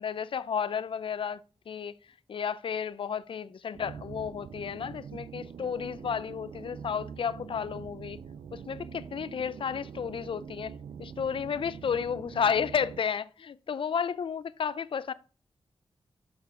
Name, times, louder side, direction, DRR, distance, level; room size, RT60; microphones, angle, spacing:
voice 1, 0.0-1.4 1.7-1.9 2.3-8.2 8.5-10.7 11.0-15.1, left 7 dB, 65° left, 0.5 m, -32 dB
sound 1, 3.7-13.0, right 7 dB, 75° right, 0.5 m, -44 dB
6.9 x 6.4 x 3.8 m
cardioid pair, 50°, 9 cm